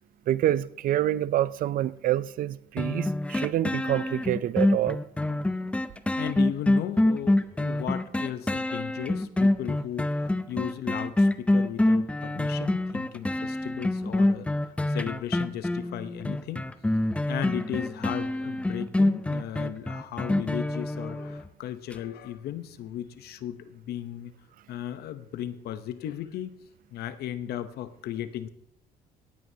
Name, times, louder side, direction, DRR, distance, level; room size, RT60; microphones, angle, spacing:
voice 1, 0.3-5.0, right 12 dB, 55° right, 0.4 m, -27 dB
sound 1, 2.8-21.5 21.9-22.0, left 1 dB, 5° left, 0.5 m, -26 dB
voice 2, 6.2-16.7 17.3-24.3 24.7-26.5 26.9-28.5, left 11 dB, 70° left, 0.8 m, -36 dB
17.0 x 9.2 x 2.8 m
cardioid pair, 110°, 17 cm